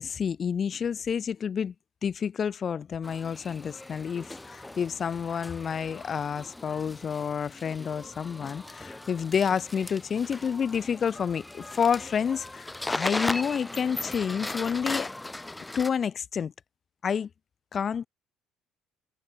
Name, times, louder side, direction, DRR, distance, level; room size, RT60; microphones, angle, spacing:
voice 1, 0.0-1.7 2.0-15.1 15.8-16.5 17.0-17.3 17.7-18.1, left 7 dB, 35° left, 7.0 m, -29 dB
sound 1, 3.0-15.9, left 2 dB, 10° left, 5.6 m, -38 dB
open air
cardioid pair, 140°, 0 cm